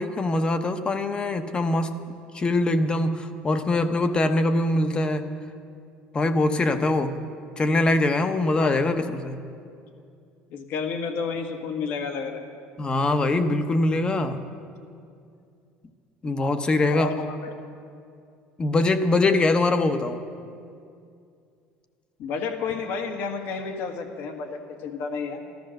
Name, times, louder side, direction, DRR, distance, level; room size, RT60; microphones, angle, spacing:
voice 1, 0.0-1.9 2.3-5.3 6.1-7.1 7.6-9.4 12.8-14.4 16.2-17.1 18.6-20.2, left 2 dB, 25° left, 9 dB, 0.9 m, -23 dB
voice 2, 10.5-12.4 16.9-17.5 22.2-25.5, left 5 dB, 65° left, 5 dB, 1.6 m, -31 dB
13.5 x 13.0 x 6.4 m, 2.4 s
cardioid pair, 125°, 4 cm